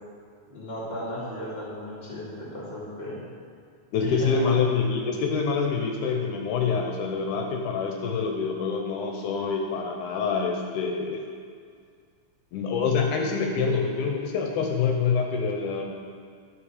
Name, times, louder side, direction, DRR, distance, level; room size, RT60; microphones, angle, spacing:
voice 1, 0.5-3.2 4.0-4.5, left 1 dB, 15° left, -9 dB, 2.2 m, -35 dB
voice 2, 3.9-11.2 12.5-15.8, left 5 dB, 80° left, 2 dB, 2.2 m, -26 dB
11.5 x 5.1 x 4.9 m, 2.1 s
omnidirectional pair, 3.6 m